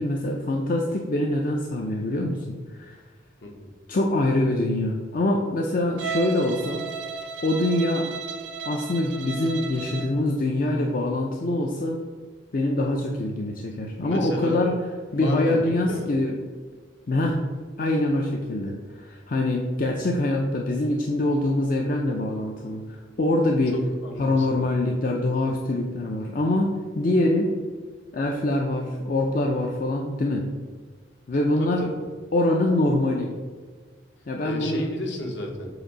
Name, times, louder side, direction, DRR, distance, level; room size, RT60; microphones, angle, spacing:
voice 1, 0.0-3.0 3.9-6.9 7.4-8.1 8.6-12.0 12.5-14.7 15.1-16.4 17.1-17.4 17.8-22.8 23.2-23.8 24.2-27.6 28.1-30.5 31.3-31.9 32.3-33.3 34.3-34.8, left 1 dB, 45° left, 1 dB, 0.5 m, -24 dB
Bowed string instrument, 6.0-10.2, right 5 dB, 65° right, 0.4 m, -34 dB
voice 2, 14.0-14.7 15.1-15.6 15.9-16.1 23.7-24.6 31.6-32.1 34.4-35.7, equal, 65° left, 1 dB, 1.2 m, -32 dB
7.9 x 2.6 x 4.9 m, 1.5 s
head